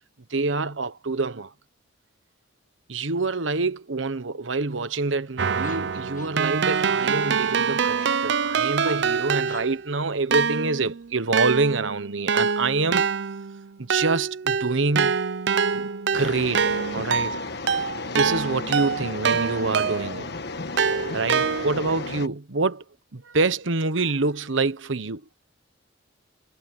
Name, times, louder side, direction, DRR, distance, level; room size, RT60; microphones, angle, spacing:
voice 1, 0.3-1.5 2.9-13.1 13.8-15.2 15.7-17.4 18.1-20.3 21.1-22.8 23.1-25.2, right 3 dB, 85° right, 1.1 m, -26 dB
sound 1, 4.8-11.3, left 6 dB, 45° left, 1.4 m, -48 dB
Keyboard (musical), 5.4-9.9 10.3-20.2 20.8-22.0, right 6 dB, 65° right, 0.6 m, -25 dB
sound 2, 16.1-22.3, left 3 dB, 60° left, 1.4 m, -34 dB
head